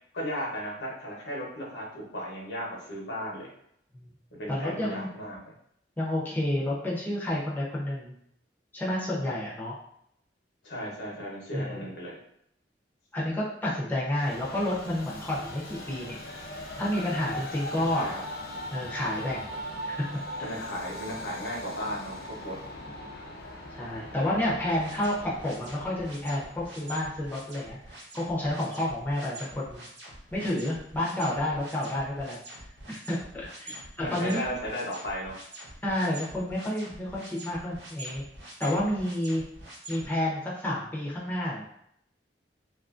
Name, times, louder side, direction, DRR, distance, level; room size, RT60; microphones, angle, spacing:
voice 1, 0.1-3.5 4.4-5.5 10.6-12.2 17.9-18.2 20.4-22.2 22.4-22.5 33.7-35.3, equal, 80° left, -3 dB, 0.9 m, -35 dB
voice 2, 4.5-5.1 6.0-8.2 8.7-9.7 11.5-11.9 13.1-16.2 16.8-18.1 18.7-19.5 19.9-20.2 23.7-29.9 30.3-32.4 32.9-34.6 35.8-38.3 38.6-39.4 39.9-41.6, left 1 dB, 10° left, -6 dB, 0.6 m, -30 dB
Train, 14.1-27.6, left 1 dB, 55° left, 0.5 m, -40 dB
sound 1, 24.8-40.1, right 1 dB, 90° right, 0.9 m, -45 dB
2.7 x 2.5 x 2.4 m, 0.72 s
head